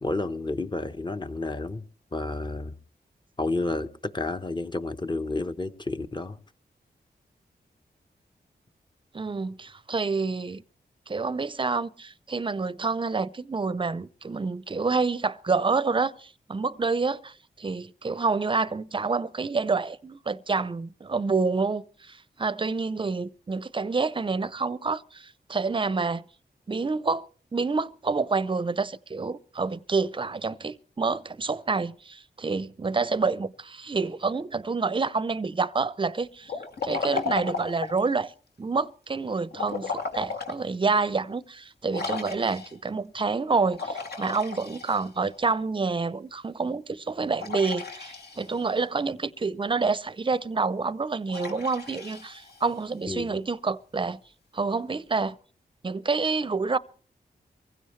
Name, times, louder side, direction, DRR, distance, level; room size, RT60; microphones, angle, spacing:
voice 1, 0.0-1.8 2.1-2.8 3.4-6.4 53.1-53.4, left 2 dB, 25° left, 1.0 m, -30 dB
voice 2, 9.1-10.6 11.1-26.2 26.7-36.5 36.8-38.3 38.6-54.2 54.5-55.4 55.8-56.8, right 4 dB, 30° right, 0.6 m, -28 dB
Liquid, 36.5-38.1 39.5-40.6 41.1-41.2 41.9-42.9 43.7-45.4 47.4-48.7 51.3-52.9, left 5 dB, 65° left, 2.4 m, -34 dB
23.5 x 16.0 x 3.2 m
cardioid pair, 60°, 18 cm